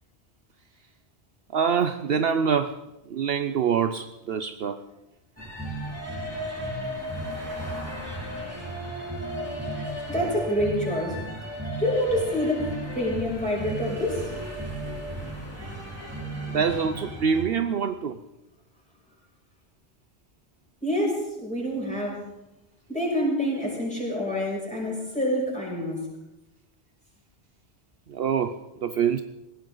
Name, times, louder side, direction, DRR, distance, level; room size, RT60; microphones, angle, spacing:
voice 1, 1.5-4.8 16.5-18.2 28.1-29.2, right 7 dB, 65° right, 10 dB, 0.9 m, -25 dB
sound 1, 5.4-17.4, right 1 dB, 15° right, 4.3 m, -34 dB
voice 2, 10.1-11.2 11.8-14.3 20.8-22.3 22.9-26.0, left 1 dB, 5° left, -3 dB, 6.4 m, -27 dB
20.5 x 17.0 x 3.9 m, 0.91 s
omnidirectional pair, 1.1 m